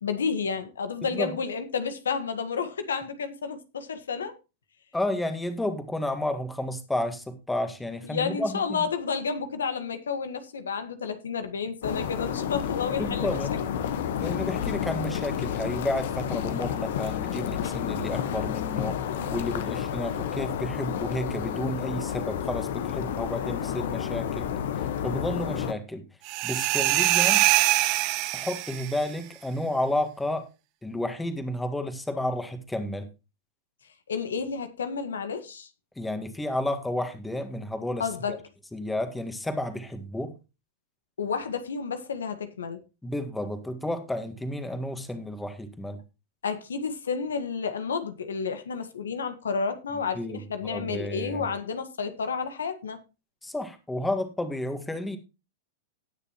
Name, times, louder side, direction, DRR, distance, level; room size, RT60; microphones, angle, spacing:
voice 1, 0.0-4.3 8.1-13.4 34.1-35.7 38.0-38.4 41.2-42.8 46.4-53.0, left 5 dB, 85° left, 1.5 m, -31 dB
voice 2, 1.0-1.4 4.9-8.9 13.0-13.5 14.2-19.0 19.3-24.5 24.8-26.0 26.4-27.4 28.3-30.5 30.8-33.1 36.0-38.4 38.7-40.3 43.0-46.0 50.2-51.5 53.4-55.2, left 1 dB, 5° left, 1.8 m, -31 dB
sound 1, 11.8-25.7, left 9 dB, 65° left, 1.3 m, -30 dB
sound 2, 26.3-29.0, right 17 dB, 50° right, 1.1 m, -23 dB
18.0 x 6.7 x 3.0 m
hypercardioid pair, 110°, 0 cm